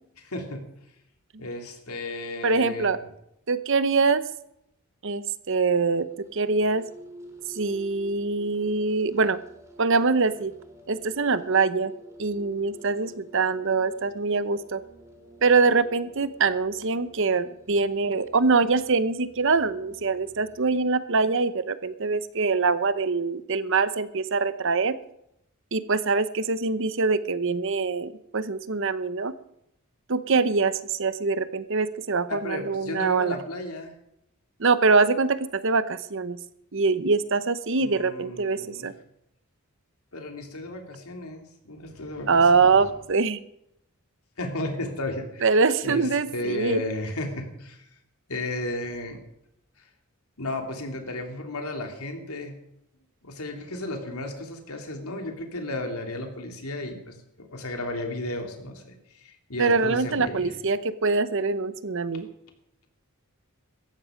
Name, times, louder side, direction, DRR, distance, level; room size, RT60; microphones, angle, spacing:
voice 1, 0.3-0.6 1.4-2.9 32.3-33.9 37.8-38.9 40.1-42.8 44.4-45.5 45.8-47.9 48.3-49.2 50.4-52.5 53.2-60.5, left 1 dB, 85° left, 3 dB, 3.1 m, -34 dB
voice 2, 2.4-3.0 3.5-4.2 5.0-6.1 6.3-6.8 7.5-9.4 9.8-10.5 10.9-11.9 12.2-14.8 15.4-25.0 25.7-29.3 30.1-33.4 34.6-36.4 36.7-38.9 42.3-43.4 45.4-46.8 59.6-62.3, right 4 dB, 60° right, 14 dB, 0.8 m, -24 dB
sound 1, 5.6-20.9, right 1 dB, 15° right, 3.3 m, -50 dB
17.0 x 14.0 x 5.1 m, 0.80 s
head